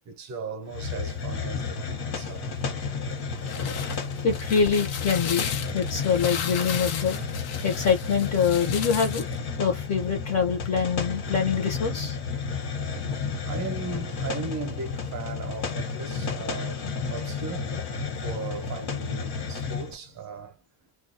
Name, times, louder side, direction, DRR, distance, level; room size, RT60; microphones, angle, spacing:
voice 1, 0.0-2.7 3.0-3.2 4.2-4.3 5.7-5.8 13.4-17.7 18.2-20.6, right 4 dB, 35° right, 0.7 m, -37 dB
Hiss, 0.7-19.9, left 5 dB, 50° left, 1.1 m, -32 dB
sound 1, 3.2-9.4, left 8 dB, 85° left, 0.9 m, -35 dB
voice 2, 4.2-7.2 7.6-9.2 9.6-12.2, left 6 dB, 30° left, 0.7 m, -25 dB
2.4 x 2.2 x 2.6 m
cardioid pair, 165°, 50 cm